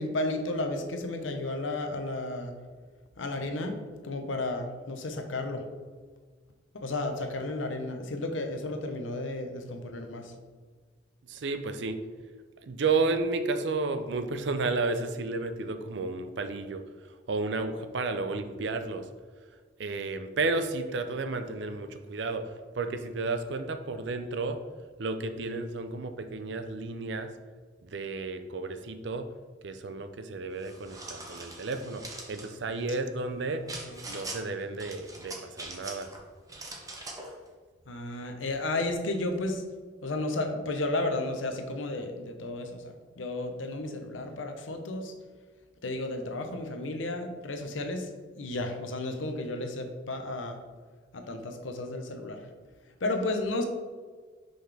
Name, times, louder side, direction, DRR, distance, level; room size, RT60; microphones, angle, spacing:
voice 1, 0.0-2.5 3.2-3.8 4.0-5.6 6.7-10.3 33.3-33.4 33.9-34.0 37.9-39.6 40.0-45.1 45.8-50.6 51.1-52.4 53.0-53.6, left 2 dB, 85° left, 5 dB, 0.8 m, -33 dB
voice 2, 11.3-12.0 12.6-19.1 19.8-24.6 25.0-27.3 27.8-29.3 29.6-32.0 32.3-33.6 34.1-36.1, right 3 dB, 65° right, 8 dB, 0.5 m, -32 dB
sound 1, 30.6-32.5 33.7-34.4 34.8-36.2 36.5-37.3, right 2 dB, 20° right, 0.8 m, -42 dB
5.8 x 5.2 x 3.4 m, 1.5 s
head